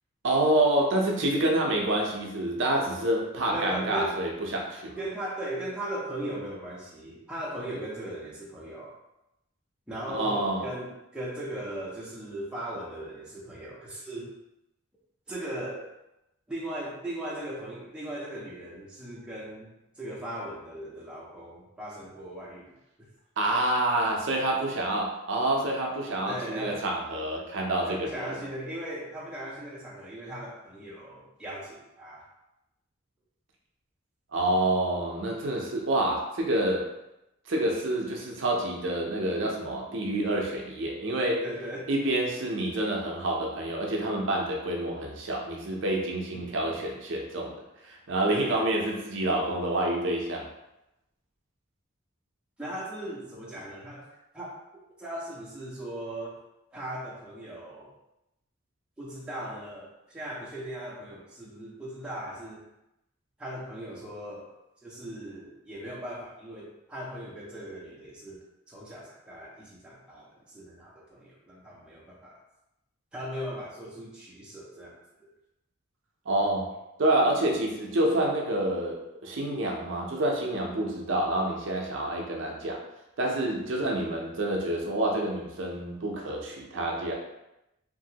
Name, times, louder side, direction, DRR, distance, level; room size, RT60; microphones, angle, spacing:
voice 1, 0.2-5.0 10.1-10.7 23.4-28.3 34.3-36.9 37.5-41.4 41.9-50.5 76.3-76.7 77.0-82.8 83.2-87.1, right 1 dB, 60° right, 0 dB, 0.5 m, -28 dB
voice 2, 3.5-4.2 5.0-8.9 9.9-14.3 15.3-15.9 16.5-22.7 26.2-26.8 27.9-32.3 41.4-41.8 46.3-46.8 48.2-48.9 52.6-54.6 55.0-56.5 56.7-57.9 59.0-62.6 63.4-64.5 64.8-68.4 68.7-72.4 73.1-74.9 75.2-75.3 83.6-84.1, right 1 dB, 5° right, -6 dB, 0.5 m, -38 dB
2.9 x 2.6 x 2.7 m, 0.89 s
head